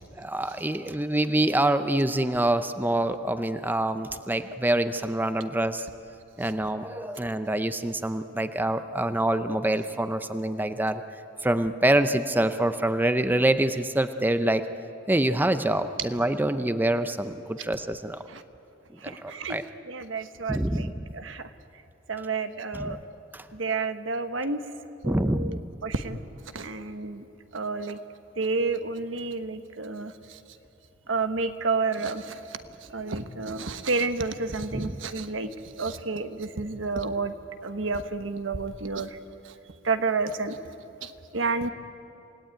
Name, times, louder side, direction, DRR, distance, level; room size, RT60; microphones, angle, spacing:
voice 1, 0.2-5.9 6.4-11.0 11.4-14.6 15.1-18.2 19.0-19.6 20.5-20.9 22.7-23.0 23.3-23.4 25.0-25.7 34.7-35.0, right 1 dB, 10° right, 10 dB, 0.6 m, -26 dB
voice 2, 19.0-19.6 19.9-20.9 21.1-21.5 22.1-23.0 23.5-24.6 25.0-26.2 26.5-27.2 27.5-28.0 28.4-30.4 31.1-32.4 32.9-35.5 35.8-37.3 37.6-39.1 39.8-40.6 41.0-41.7, right 4 dB, 75° right, 9 dB, 1.2 m, -30 dB
28.0 x 18.0 x 9.2 m, 2.8 s
head